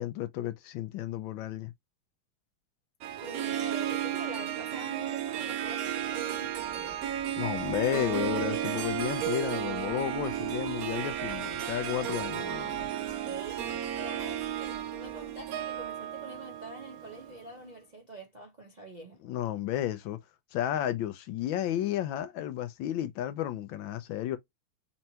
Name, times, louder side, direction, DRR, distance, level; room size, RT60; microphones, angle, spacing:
voice 1, 0.0-1.7 7.4-12.9 19.2-20.2 20.5-24.4, left 12 dB, 75° left, 1.2 m, -32 dB
Harp, 3.0-17.5, right 11 dB, 85° right, 0.8 m, -33 dB
voice 2, 3.2-7.0 13.2-19.2, right 2 dB, 65° right, 0.4 m, -45 dB
sound 1, 5.4-16.4, equal, 20° left, 1.2 m, -55 dB
4.4 x 3.0 x 2.8 m
omnidirectional pair, 2.3 m